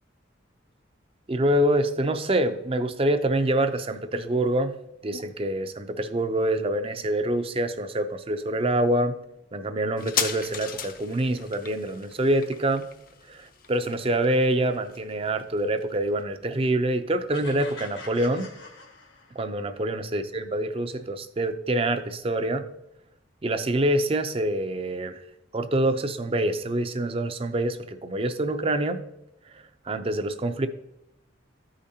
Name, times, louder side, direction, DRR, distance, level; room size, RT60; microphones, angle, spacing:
voice 1, 1.3-4.7 5.0-9.2 9.5-12.8 13.3-18.5 19.4-22.6 23.4-25.2 25.5-29.0 29.9-30.7, right 1 dB, 30° right, 9 dB, 0.5 m, -26 dB
sound 1, 10.0-17.1 17.3-17.4, left 8 dB, 50° left, 0.5 m, -36 dB
sound 2, 17.3-19.6, left 3 dB, 85° left, 1.3 m, -44 dB
13.5 x 5.1 x 2.8 m, 0.82 s
head